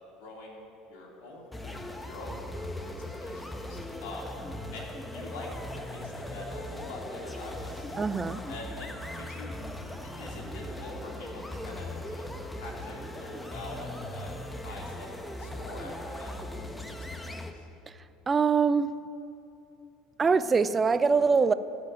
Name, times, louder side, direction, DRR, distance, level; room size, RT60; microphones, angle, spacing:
voice 1, 0.2-2.4 2.8-4.4 4.7-8.0 8.5-9.5 10.0-12.3 12.5-14.4 14.6-16.3 17.1-17.7, left 2 dB, 70° left, -3 dB, 2.9 m, -44 dB
sound 1, 1.5-17.5, left 1 dB, 10° left, 1.1 m, -39 dB
voice 2, 8.0-8.4 18.3-18.9 20.2-21.5, right 5 dB, 25° right, 14 dB, 0.5 m, -23 dB
14.0 x 5.2 x 9.3 m, 2.9 s
hypercardioid pair, 70°, 0 cm